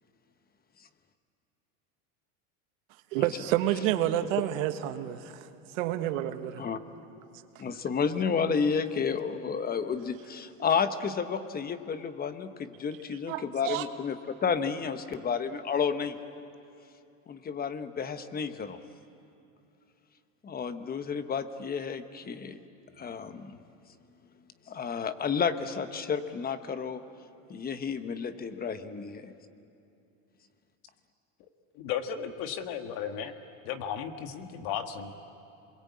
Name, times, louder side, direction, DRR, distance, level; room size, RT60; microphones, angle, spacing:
voice 1, 3.1-5.5 5.7-6.6 13.3-13.9, right 13 dB, 80° right, 8 dB, 1.5 m, -29 dB
voice 2, 7.6-16.2 17.3-18.8 20.4-22.6 23.0-23.6 24.7-27.0 27.5-29.3, left 6 dB, 25° left, 10 dB, 1.1 m, -31 dB
voice 3, 31.7-33.3 33.6-35.1, left 8 dB, 65° left, 7 dB, 1.8 m, -35 dB
28.5 x 22.0 x 8.5 m, 2.7 s
supercardioid pair, 130°, 39 cm